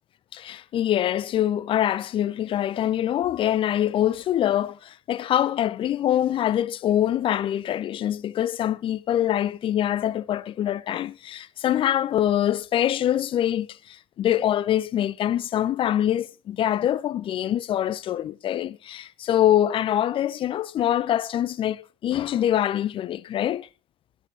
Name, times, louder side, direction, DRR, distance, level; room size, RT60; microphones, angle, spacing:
voice 1, 0.3-23.7, left 11 dB, 40° left, 0.7 m, -24 dB
21.5 x 8.6 x 3.0 m
figure-of-eight pair, 65°, 14 cm